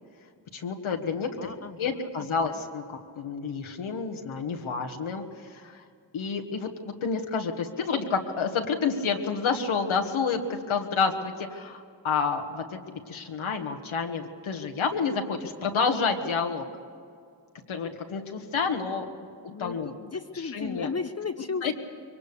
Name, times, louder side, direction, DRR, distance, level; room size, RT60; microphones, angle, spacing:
voice 1, 0.5-1.5 1.8-5.8 6.1-16.6 17.7-19.1 19.6-19.9 20.5-20.9 21.6-21.7, left 5 dB, 85° left, 4 dB, 1.7 m, -29 dB
voice 2, 1.4-2.6 19.5-21.7, left 5 dB, 35° left, 9 dB, 0.8 m, -35 dB
22.5 x 19.0 x 6.9 m, 2.3 s
cardioid pair, 45°, 47 cm